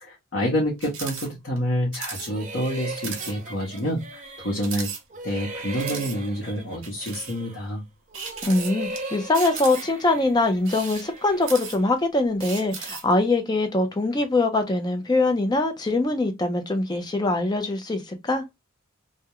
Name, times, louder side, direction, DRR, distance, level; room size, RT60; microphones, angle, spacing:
voice 1, 0.0-4.9 5.2-7.8, equal, 60° left, 0.8 m, -28 dB
sound 1, 0.8-1.3 1.6-1.7 1.9-2.3 2.7-2.8 3.0-3.3 3.8-3.9 4.6-5.4 5.8-6.2 6.8-7.4 8.1-9.0 9.3-10.0 10.6-12.0 12.4-13.1, right 6 dB, 75° right, 0.9 m, -36 dB
sound 2, 2.1-4.8 5.1-7.7 8.1-11.9, right 2 dB, 35° right, 0.5 m, -38 dB
voice 2, 8.4-18.4, left 2 dB, 20° left, 0.4 m, -23 dB
2.3 x 2.1 x 2.8 m
head